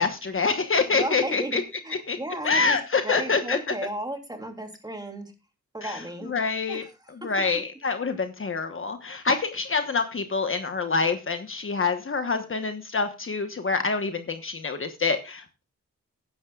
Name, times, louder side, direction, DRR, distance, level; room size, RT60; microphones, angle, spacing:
voice 1, 0.0-1.6 2.1-2.2 2.4-3.6 5.8-6.0 6.3-6.8 7.2-15.6, left 4 dB, 45° left, 7 dB, 1.2 m, -26 dB
voice 2, 0.9-5.3 5.7-7.4, right 1 dB, 15° right, 4 dB, 3.0 m, -35 dB
14.5 x 10.5 x 2.4 m, 0.28 s
cardioid pair, 90°, 30 cm